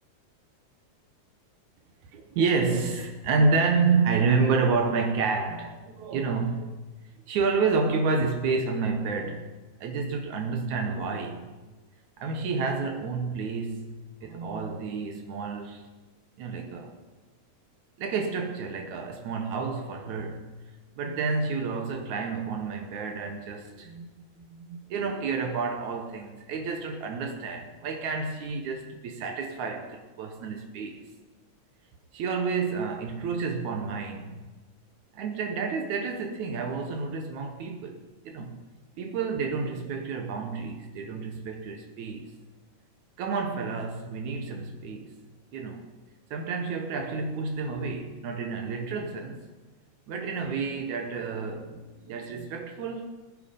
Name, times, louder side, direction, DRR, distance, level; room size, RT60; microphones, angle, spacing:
voice 1, 2.1-6.8 7.3-9.5 9.8-11.5 12.2-15.8 16.4-17.0 18.0-20.5 21.0-31.0 32.1-34.4 35.1-38.6 39.0-42.3 43.2-45.2 45.5-45.9 46.3-49.4 50.1-53.2, right 4 dB, 75° right, 2.6 m, -29 dB
20.5 x 9.8 x 5.2 m
omnidirectional pair, 3.4 m